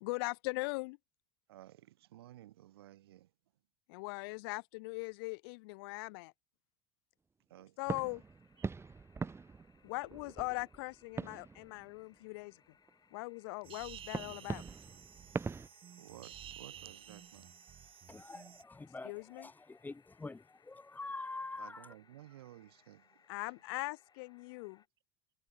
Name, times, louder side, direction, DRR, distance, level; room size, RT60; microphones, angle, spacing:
voice 1, 0.0-1.0 3.9-6.3 7.8-8.2 9.8-12.6 13.1-14.6 19.0-19.5 23.3-24.8, left 27 dB, 70° left, 1.3 m, -40 dB
voice 2, 1.5-3.3 7.5-8.2 8.6-8.7 16.0-17.6 21.6-23.3, right 14 dB, 85° right, 3.1 m, -55 dB
sound 1, 7.8-24.9, left 7 dB, 35° left, 7.1 m, -69 dB
sound 2, 7.9-12.4 12.9-13.0 14.1-15.7, right 4 dB, 20° right, 1.1 m, -42 dB
sound 3, 13.6-18.6, right 10 dB, 45° right, 1.7 m, -52 dB
voice 3, 18.1-19.1 19.4-21.9, left 3 dB, 15° left, 0.7 m, -45 dB
hypercardioid pair, 75°, 13 cm